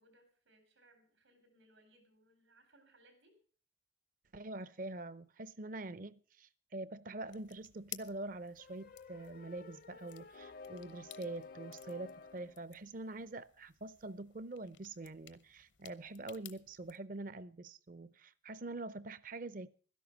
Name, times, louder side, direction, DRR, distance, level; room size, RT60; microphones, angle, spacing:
voice 1, 0.0-3.3, right 1 dB, 90° right, 4.4 m, -67 dB
voice 2, 4.3-19.7, right 2 dB, 45° right, 0.5 m, -45 dB
sound 1, 7.3-17.0, left 14 dB, 75° left, 0.8 m, -56 dB
sound 2, 8.6-12.6, left 4 dB, 50° left, 0.5 m, -53 dB
12.5 x 11.0 x 6.1 m
head